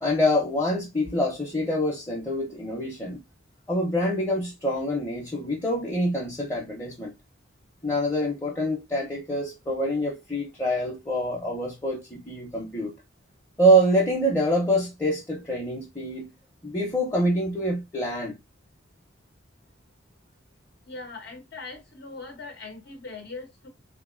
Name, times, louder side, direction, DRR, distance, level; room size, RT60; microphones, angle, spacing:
voice 1, 0.0-3.2 3.7-7.1 7.8-12.9 13.6-16.3 16.6-18.3, equal, 15° left, 0.7 m, -25 dB
voice 2, 20.9-23.7, left 3 dB, 60° left, 0.8 m, -40 dB
3.6 x 2.8 x 2.5 m
head